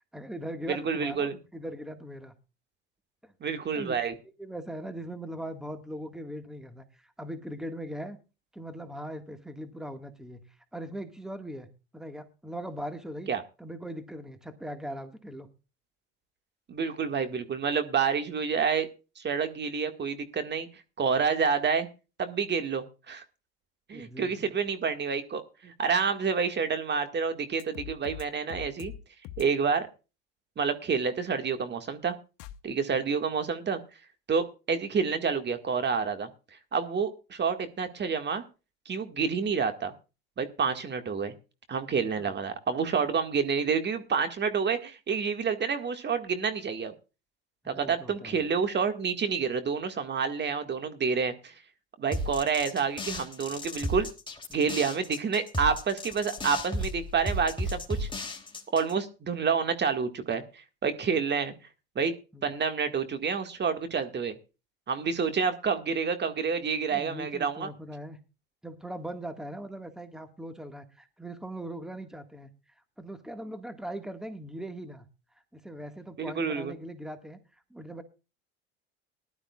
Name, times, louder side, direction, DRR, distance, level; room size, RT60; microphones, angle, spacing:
voice 1, 0.1-2.4 3.2-3.3 3.7-4.0 4.4-8.2 8.5-11.7 11.9-13.3 13.6-15.5 23.9-24.5 32.9-33.1 42.2-42.3 47.6-48.4 62.3-62.6 66.9-68.2 68.6-72.5 73.0-75.1 75.5-78.0, right 1 dB, ahead, 8 dB, 1.7 m, -40 dB
voice 2, 0.7-1.4 3.4-4.1 13.3-13.4 16.7-18.9 19.2-20.7 21.0-21.9 22.2-23.2 23.9-28.9 29.4-29.9 30.6-32.2 32.6-33.8 34.3-36.3 36.7-38.4 38.9-39.9 40.4-41.3 41.7-46.9 47.7-51.5 52.0-54.1 54.5-58.1 58.7-61.5 62.0-62.1 62.4-64.4 64.9-67.7 76.2-76.7, right 6 dB, 35° right, 8 dB, 1.8 m, -28 dB
sound 1, 27.6-28.2 28.5-29.0 29.2-29.4 32.4-32.5, left 12 dB, 70° left, 1.0 m, -41 dB
sound 2, 52.1-58.9, left 1 dB, 15° left, 3.1 m, -34 dB
19.5 x 12.0 x 2.4 m, 0.31 s
hypercardioid pair, 80°, 30 cm